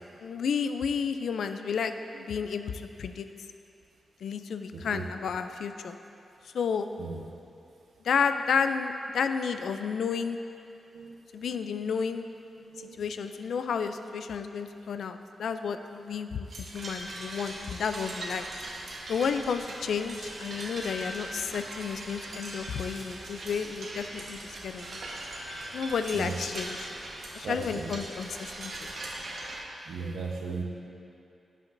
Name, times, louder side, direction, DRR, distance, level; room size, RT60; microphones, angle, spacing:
voice 1, 0.2-1.9 2.2-2.7 3.0-3.3 4.2-6.0 6.5-6.9 8.0-10.4 11.3-12.3 13.0-18.4 19.1-25.0 25.7-26.9 27.3-28.9, left 6 dB, 80° left, 9 dB, 0.3 m, -31 dB
voice 2, 12.6-13.0 26.1-26.3 27.4-27.9 29.9-30.6, right 5 dB, 85° right, 0 dB, 0.9 m, -36 dB
sound 1, 16.5-29.6, right 1 dB, 60° right, 1.2 m, -40 dB
11.5 x 7.5 x 2.6 m, 2.7 s
wide cardioid pair, 110°, 0 cm